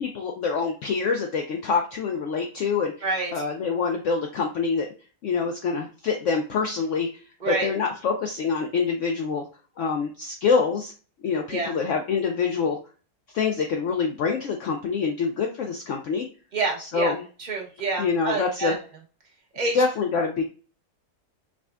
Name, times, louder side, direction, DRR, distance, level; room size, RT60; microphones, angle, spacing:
voice 1, 0.0-3.1 3.3-4.9 5.2-7.1 7.5-9.4 9.8-10.9 11.2-12.8 13.3-16.3 16.8-17.2 18.0-18.8 19.6-20.4, left 5 dB, 65° left, 2 dB, 0.8 m, -25 dB
voice 2, 16.5-17.1 17.4-18.7 19.5-19.8, right 3 dB, 35° right, -1 dB, 0.9 m, -27 dB
4.9 x 2.3 x 2.4 m, 0.36 s
omnidirectional pair, 1.6 m